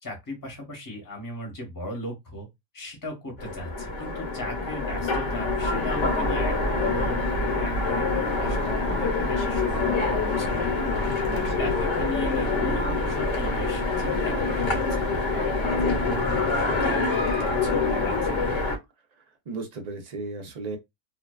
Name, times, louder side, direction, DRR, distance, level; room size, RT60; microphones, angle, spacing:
voice 1, 0.0-2.5 2.7-18.5, left 1 dB, 15° left, 0.8 m, -37 dB
Train, 3.4-18.8, left 3 dB, 65° left, 1.1 m, -25 dB
voice 2, 11.3-11.7 19.5-20.8, right 3 dB, 55° right, 0.4 m, -35 dB
2.5 x 2.2 x 2.2 m
omnidirectional pair, 1.4 m